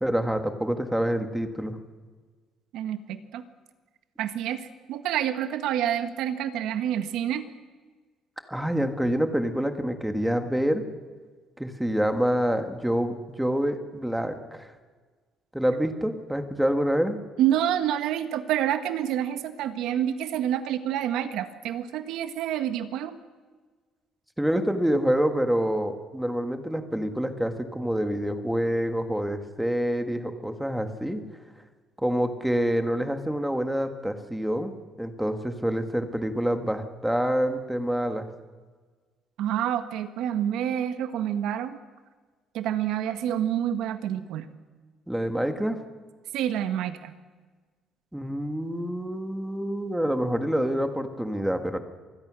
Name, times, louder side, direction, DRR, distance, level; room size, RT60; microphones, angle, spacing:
voice 1, 0.0-1.8 8.5-10.8 11.6-14.7 15.5-17.2 24.4-31.2 32.0-38.3 45.1-45.8 48.1-51.8, equal, 5° right, 7 dB, 1.6 m, -27 dB
voice 2, 2.7-3.4 4.2-7.5 17.4-23.2 39.4-41.8 42.5-44.5 46.3-47.1, right 10 dB, 75° right, 9 dB, 1.6 m, -28 dB
26.0 x 20.5 x 6.3 m, 1.4 s
cardioid pair, 175°, 0 cm